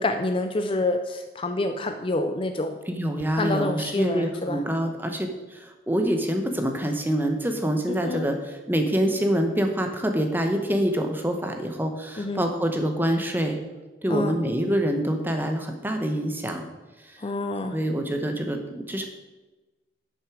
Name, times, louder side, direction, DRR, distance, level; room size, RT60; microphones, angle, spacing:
voice 1, 0.0-2.8 3.4-4.6 8.1-8.3 12.2-12.4 14.1-14.3 17.2-17.8, left 2 dB, 30° left, 7 dB, 0.4 m, -27 dB
voice 2, 2.9-13.6 14.0-16.7 17.0-17.2 17.7-19.1, right 1 dB, 10° right, 5 dB, 0.9 m, -26 dB
11.0 x 6.3 x 4.8 m, 1.1 s
head